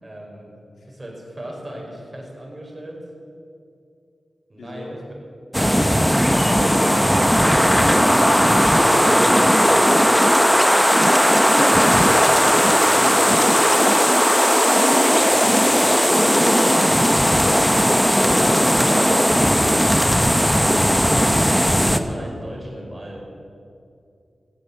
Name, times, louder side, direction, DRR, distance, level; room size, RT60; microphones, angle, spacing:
voice 1, 0.0-3.0 4.5-5.3 5.6-6.6 7.1-9.9 12.5-13.0 21.0-23.2, right 1 dB, 25° right, -2 dB, 5.1 m, -36 dB
voice 2, 4.6-5.0 6.3-7.1 10.3-10.8 11.5-11.8 15.0-15.8, left 1 dB, 80° left, 0 dB, 3.2 m, -35 dB
sound 1, 5.5-22.0, equal, ahead, 0.9 m, -16 dB
15.0 x 10.0 x 8.4 m, 2.5 s
cardioid pair, 65°, 0 cm